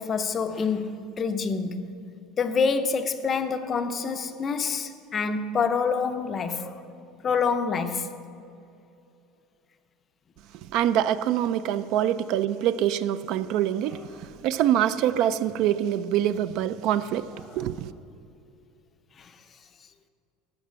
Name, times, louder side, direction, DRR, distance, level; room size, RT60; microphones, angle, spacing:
voice 1, 0.0-1.9 2.4-6.8 7.2-8.1 19.2-19.3, left 5 dB, 20° left, 0.5 m, -27 dB
voice 2, 10.7-14.0 14.4-17.3 17.6-17.9, right 11 dB, 45° right, 0.3 m, -24 dB
13.0 x 5.9 x 7.5 m
cardioid pair, 175°, 0 cm